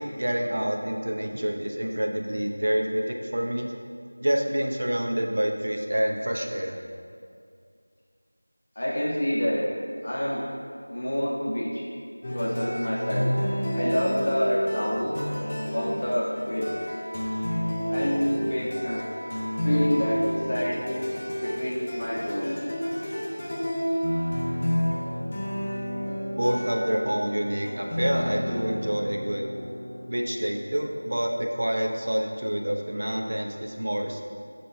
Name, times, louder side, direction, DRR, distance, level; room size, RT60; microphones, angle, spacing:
voice 1, 0.0-3.7 4.2-6.8 26.4-29.5 30.1-34.2, equal, 50° right, 1 dB, 0.8 m, -27 dB
voice 2, 8.7-9.7 10.0-10.4 10.9-11.9 12.3-13.3 13.7-15.2 15.7-16.7 17.9-19.0 19.6-20.9 21.4-22.6, equal, 40° left, -6 dB, 1.5 m, -27 dB
sound 1, 12.2-31.6, equal, 25° left, 0.8 m, -30 dB
15.5 x 5.3 x 2.2 m, 2.3 s
figure-of-eight pair, 175°, 0 cm